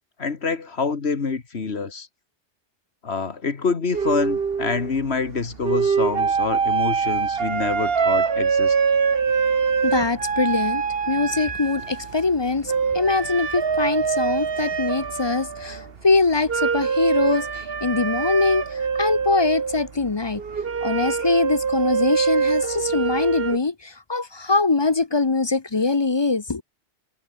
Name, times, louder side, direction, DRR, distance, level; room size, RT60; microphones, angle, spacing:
voice 1, 0.2-2.1 3.0-8.8, left 4 dB, 65° left, 2.0 m, -26 dB
sound 1, 3.9-23.6, right 5 dB, 60° right, 1.5 m, -24 dB
voice 2, 9.8-20.4 20.8-26.6, left 3 dB, 30° left, 0.6 m, -23 dB
omnidirectional pair, 1.2 m